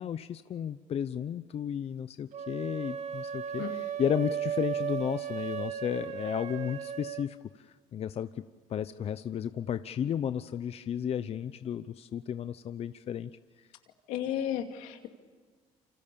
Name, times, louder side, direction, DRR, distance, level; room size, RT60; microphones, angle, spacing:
voice 1, 0.0-8.3 8.7-13.3, left 9 dB, 55° left, 12 dB, 0.8 m, -33 dB
sound 1, 2.3-7.3, right 8 dB, 65° right, 1.8 m, -35 dB
voice 2, 14.1-15.1, left 10 dB, 90° left, 5 dB, 2.5 m, -33 dB
28.5 x 25.5 x 7.1 m, 1.5 s
cardioid pair, 85°, 12 cm